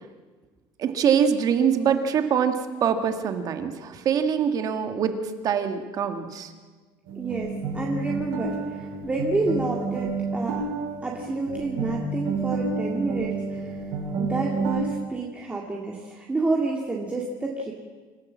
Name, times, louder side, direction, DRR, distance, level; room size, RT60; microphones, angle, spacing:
voice 1, 0.8-5.2 5.4-6.5, right 7 dB, 40° right, 7 dB, 1.9 m, -24 dB
sound 1, 7.1-14.8, right 4 dB, 90° right, 7.1 m, -30 dB
voice 2, 7.2-10.6 11.0-13.8 14.2-17.7, right 2 dB, 15° right, -1 dB, 2.2 m, -29 dB
26.5 x 14.5 x 7.5 m, 1.4 s
cardioid pair, 150°, 9 cm